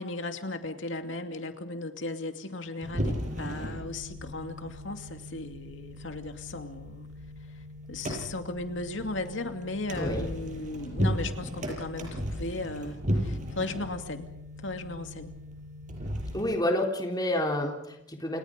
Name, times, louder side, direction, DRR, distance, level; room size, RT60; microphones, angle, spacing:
voice 1, 0.0-7.1 7.9-14.3 14.6-15.3, left 2 dB, 70° left, 6 dB, 2.6 m, -36 dB
sound 1, 2.8-16.5, equal, 40° right, 7.5 m, -35 dB
voice 2, 10.0-10.3 16.3-18.4, left 1 dB, 20° left, 1 dB, 3.6 m, -29 dB
29.5 x 28.5 x 5.3 m, 0.82 s
head